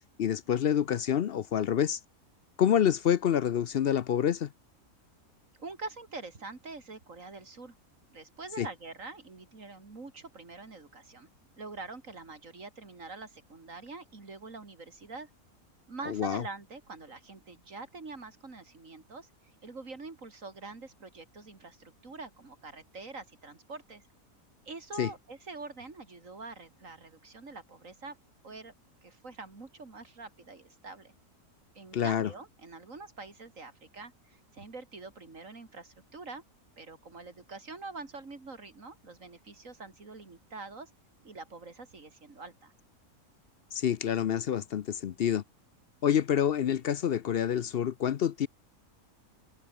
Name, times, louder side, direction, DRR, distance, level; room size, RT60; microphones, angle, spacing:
voice 1, 0.2-2.0 2.6-4.5 8.6-8.7 16.1-16.4 25.0-25.1 31.9-32.3 43.7-45.4 46.0-48.5, left 9 dB, 60° left, 0.6 m, -27 dB
voice 2, 5.6-7.8 8.1-11.3 11.6-15.3 15.9-19.3 19.6-24.0 24.6-28.2 28.4-28.7 29.0-31.1 31.7-36.4 36.8-40.9 41.2-42.7, right 3 dB, 60° right, 3.4 m, -45 dB
omnidirectional pair, 1.6 m